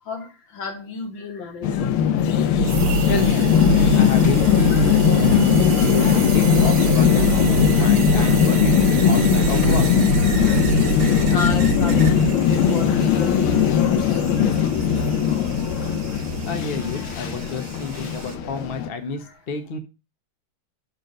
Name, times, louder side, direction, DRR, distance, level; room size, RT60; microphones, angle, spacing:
voice 1, 0.0-1.9 5.8-6.3 7.3-7.8 8.8-8.9 9.6-9.7 10.5-15.3 19.2-19.3, left 4 dB, 65° left, 2.1 m, -33 dB
sound 1, 1.6-18.9, left 8 dB, 80° left, 1.6 m, -19 dB
voice 2, 2.6-9.9 16.5-19.8, left 4 dB, 45° left, 0.7 m, -30 dB
sound 2, 2.6-18.4, right 6 dB, 60° right, 1.7 m, -35 dB
sound 3, 2.6-12.3, right 4 dB, 85° right, 1.6 m, -25 dB
6.5 x 4.5 x 6.4 m
omnidirectional pair, 2.3 m